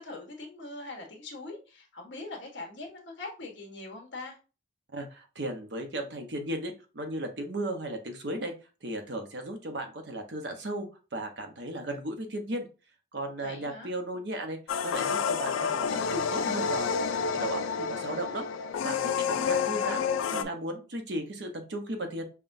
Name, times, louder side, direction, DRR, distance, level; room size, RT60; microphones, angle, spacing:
voice 1, 0.0-4.4 13.4-13.9 19.5-20.0, left 2 dB, 65° left, 1 dB, 1.1 m, -42 dB
voice 2, 4.9-8.5 8.8-12.7 13.1-16.9 17.3-18.5 18.8-22.2, right 1 dB, 60° right, 5 dB, 0.8 m, -36 dB
sound 1, 14.7-20.4, left 6 dB, 85° left, 0.4 m, -29 dB
5.7 x 2.2 x 2.6 m, 0.32 s
head